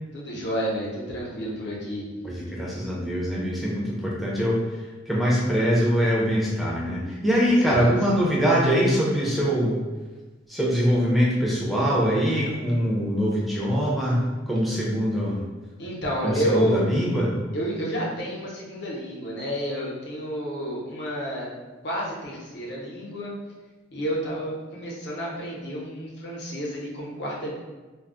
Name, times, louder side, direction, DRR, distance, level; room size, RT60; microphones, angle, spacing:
voice 1, 0.1-2.0 7.5-7.6 7.8-8.0 15.8-16.8 17.5-21.5 21.8-23.3 23.9-27.5, equal, 60° left, -4 dB, 0.7 m, -30 dB
voice 2, 2.2-4.6 5.1-9.8 10.5-14.2 14.5-15.4 16.2-17.3, equal, ahead, -5 dB, 0.5 m, -23 dB
2.2 x 2.0 x 3.6 m, 1.3 s
head